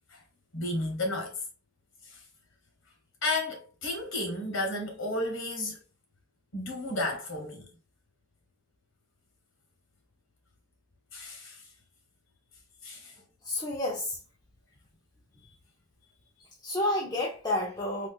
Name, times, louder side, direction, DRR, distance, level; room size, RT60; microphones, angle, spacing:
voice 1, 0.5-1.4 2.0-2.2 3.2-5.8 6.5-7.7 11.1-11.6 12.8-13.1, left 2 dB, 90° left, 1.1 m, -32 dB
voice 2, 13.4-14.2 16.4-18.1, left 1 dB, 20° left, 0.6 m, -30 dB
4.2 x 2.4 x 2.3 m
head